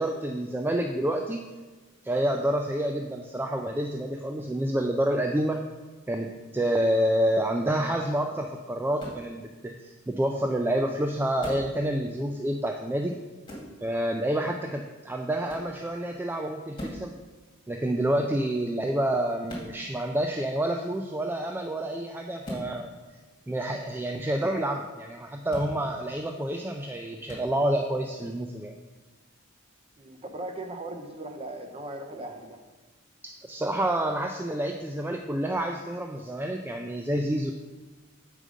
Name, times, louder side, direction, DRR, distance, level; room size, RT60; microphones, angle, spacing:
voice 1, 0.0-1.4 2.0-5.6 6.1-13.2 13.8-17.1 17.7-22.9 23.5-28.7 33.4-37.5, right 1 dB, 10° right, 3 dB, 0.3 m, -28 dB
sound 1, 9.0-9.3 11.4-11.7 13.5-13.7 15.5-15.7 16.7-17.1 19.5-19.7 22.4-22.7 25.5-25.7 27.3-27.5, equal, 20° left, 2.2 m, -38 dB
voice 2, 30.0-32.6, right 2 dB, 30° right, 5 dB, 0.7 m, -38 dB
7.7 x 5.0 x 5.1 m, 1.3 s
head